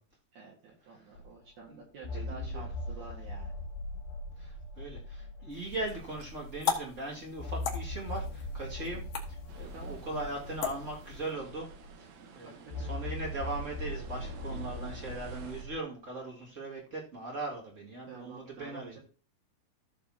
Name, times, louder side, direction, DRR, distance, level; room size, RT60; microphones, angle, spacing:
voice 1, 0.3-3.6 8.8-9.0 9.7-10.0 12.4-13.3 18.0-19.0, right 4 dB, 55° right, -3 dB, 2.8 m, -49 dB
sound 1, 1.2-1.3 2.0-6.6 7.4-12.1 12.7-15.8, left 1 dB, 75° left, 2.7 m, -40 dB
voice 2, 2.1-2.7 4.4-9.0 9.3-11.7 12.0-12.1 12.3-19.0, right 2 dB, 30° right, -3 dB, 1.4 m, -39 dB
sound 2, 5.5-11.3, left 7 dB, 60° left, 1.7 m, -39 dB
sound 3, 9.5-15.6, right 6 dB, 70° right, 2.9 m, -52 dB
15.0 x 6.9 x 2.8 m, 0.38 s
omnidirectional pair, 4.5 m